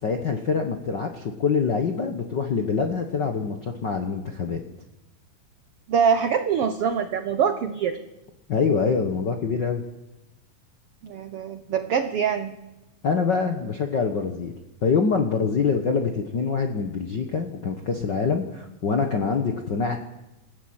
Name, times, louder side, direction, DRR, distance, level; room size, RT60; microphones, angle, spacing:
voice 1, 0.0-4.6 8.5-9.8 13.0-14.5 14.8-20.0, left 5 dB, 60° left, 5 dB, 1.1 m, -25 dB
voice 2, 5.9-8.0 11.0-12.6, right 7 dB, 80° right, 9 dB, 1.3 m, -24 dB
27.5 x 14.0 x 8.8 m, 0.98 s
omnidirectional pair, 4.0 m